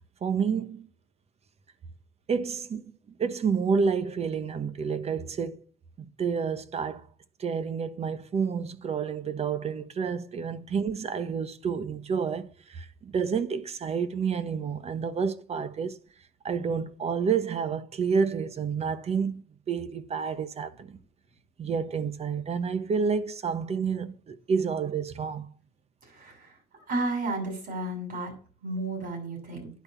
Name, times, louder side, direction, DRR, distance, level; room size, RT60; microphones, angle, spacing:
voice 1, 0.2-0.9 2.3-2.8 3.2-5.6 6.0-7.0 7.4-16.0 16.4-21.0 21.6-25.5, right 6 dB, 40° right, 1.0 m, -29 dB
voice 2, 26.1-26.5 26.9-28.3 28.6-29.7, right 2 dB, 55° right, 7.0 m, -32 dB
10.5 x 5.3 x 8.3 m
cardioid pair, 110°, 17 cm